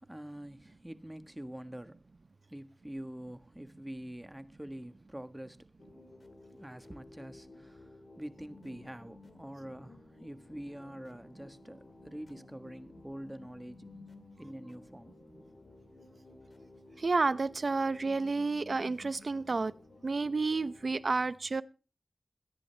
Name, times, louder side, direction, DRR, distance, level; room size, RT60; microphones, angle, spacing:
voice 1, 0.0-2.0 2.5-5.7 6.5-13.9 14.4-15.1, right 1 dB, 15° right, 1.4 m, -45 dB
sound 1, 5.8-21.0, left 2 dB, 60° left, 2.1 m, -55 dB
voice 2, 17.0-19.7 20.0-21.6, right 3 dB, 70° right, 0.6 m, -30 dB
22.0 x 10.0 x 3.3 m
cardioid pair, 45°, 0 cm